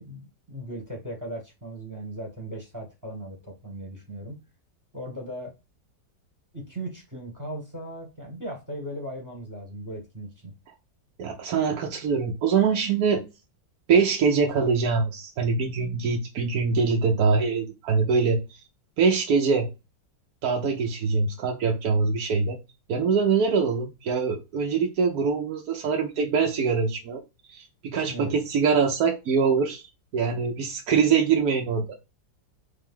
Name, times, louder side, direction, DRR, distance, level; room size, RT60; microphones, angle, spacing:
voice 1, 0.0-4.4 4.9-5.5 6.5-10.5 28.1-28.3, right 1 dB, 10° right, 1.3 m, -37 dB
voice 2, 11.2-13.2 13.9-18.4 19.0-19.7 20.4-22.6 22.9-27.2 27.5-29.8 30.1-31.9, right 5 dB, 65° right, 1.2 m, -23 dB
3.5 x 3.4 x 3.6 m
omnidirectional pair, 1.9 m